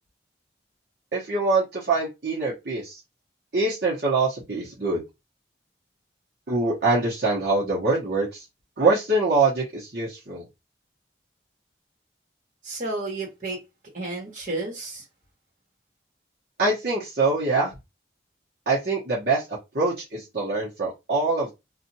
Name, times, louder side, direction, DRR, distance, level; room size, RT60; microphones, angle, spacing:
voice 1, 1.1-3.0 3.5-5.0 6.5-8.4 8.8-10.5 16.6-17.7 18.7-21.5, right 3 dB, 65° right, 1.0 m, -24 dB
voice 2, 12.6-13.6 13.9-15.0, right 2 dB, 45° right, 1.5 m, -31 dB
2.7 x 2.4 x 2.7 m
head